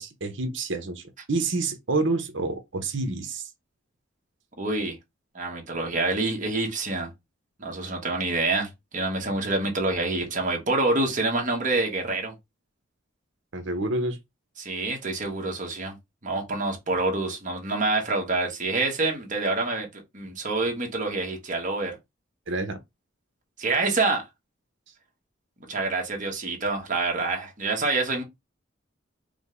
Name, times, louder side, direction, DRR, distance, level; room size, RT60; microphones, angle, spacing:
voice 1, 0.0-3.5 13.5-14.2 22.5-22.8, right 3 dB, 65° right, 0.9 m, -28 dB
voice 2, 4.6-5.0 5.3-7.1 7.6-12.3 14.6-16.0 16.2-19.9 20.1-21.9 23.6-24.2 25.7-28.2, right 3 dB, 40° right, 1.3 m, -27 dB
5.0 x 2.2 x 3.7 m
head